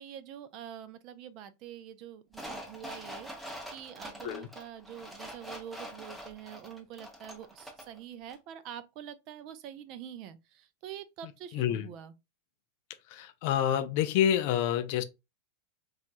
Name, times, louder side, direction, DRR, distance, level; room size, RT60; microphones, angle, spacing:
voice 1, 0.0-12.1, right 9 dB, 45° right, 0.3 m, -46 dB
sound 1, 2.3-8.0 8.3-8.4, equal, ahead, 0.6 m, -44 dB
voice 2, 11.5-11.9 13.1-15.0, left 10 dB, 55° left, 0.4 m, -28 dB
2.9 x 2.3 x 2.5 m
supercardioid pair, 140°, 0 cm